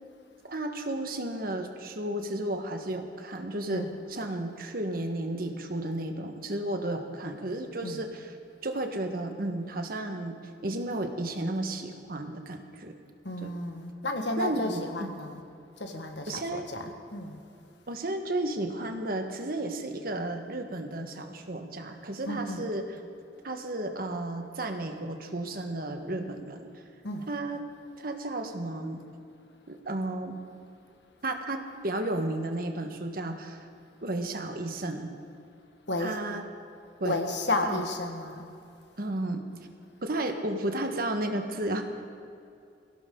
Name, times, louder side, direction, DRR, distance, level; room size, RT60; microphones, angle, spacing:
voice 1, 0.5-8.3 8.6-12.9 13.4-13.5 14.4-15.1 16.3-16.6 17.9-22.8 23.4-26.7 27.3-27.7 28.0-29.0 29.7-30.4 31.2-33.7 34.0-35.1 36.0-36.4 37.0-37.1 37.6-37.8 39.0-39.4 40.0-41.8, right 1 dB, 55° right, 5 dB, 1.5 m, -33 dB
voice 2, 13.2-15.4 15.8-17.4 22.3-22.7 27.0-27.3 35.9-36.2 37.0-38.5, left 2 dB, 80° left, 4 dB, 1.7 m, -32 dB
22.5 x 16.5 x 3.9 m, 2.5 s
head